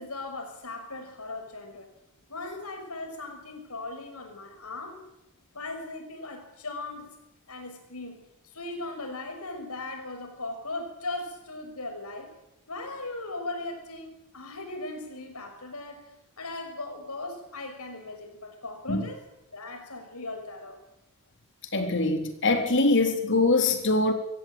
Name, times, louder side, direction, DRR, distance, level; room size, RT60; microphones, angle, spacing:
voice 1, 0.0-1.9 2.3-5.1 5.5-7.1 7.5-12.3 12.7-16.1 16.4-19.2 19.5-20.8, left 2 dB, 80° left, 6 dB, 6.1 m, -38 dB
voice 2, 21.7-24.1, left 2 dB, 55° left, 5 dB, 3.8 m, -23 dB
24.0 x 16.0 x 8.9 m, 0.88 s
head